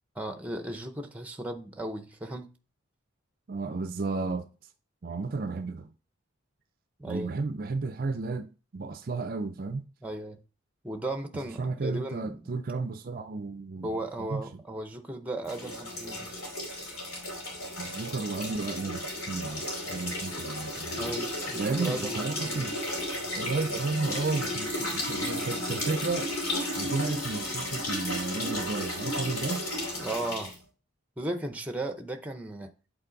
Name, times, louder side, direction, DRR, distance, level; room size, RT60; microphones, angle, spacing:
voice 1, 0.2-2.5 7.0-7.4 10.0-10.4 10.8-12.4 13.8-16.4 21.0-22.8 30.0-30.5 31.2-32.7, right 1 dB, 5° right, 0.7 m, -36 dB
voice 2, 3.5-4.5 5.0-5.9 7.0-9.9 11.6-14.6 17.8-21.2 21.6-22.8 23.3-26.3 26.8-29.6, right 3 dB, 45° right, 0.5 m, -33 dB
sound 1, 15.4-30.6, left 1 dB, 85° left, 2.8 m, -34 dB
8.3 x 4.0 x 3.9 m
head